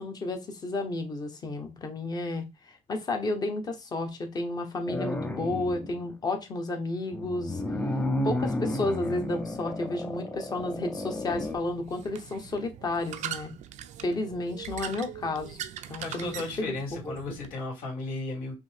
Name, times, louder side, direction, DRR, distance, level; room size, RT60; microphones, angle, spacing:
voice 1, 0.0-7.6 8.2-13.5 14.0-15.6 15.9-16.3 16.6-16.8 17.0-17.1, left 2 dB, 25° left, 1.0 m, -32 dB
sound 1, 4.9-6.0 7.1-11.6, left 1 dB, 10° left, 0.5 m, -32 dB
sound 2, 10.6-17.5, right 11 dB, 55° right, 0.5 m, -42 dB
voice 2, 16.0-18.5, left 3 dB, 75° left, 2.6 m, -35 dB
5.1 x 2.7 x 3.4 m
cardioid pair, 145°, 15 cm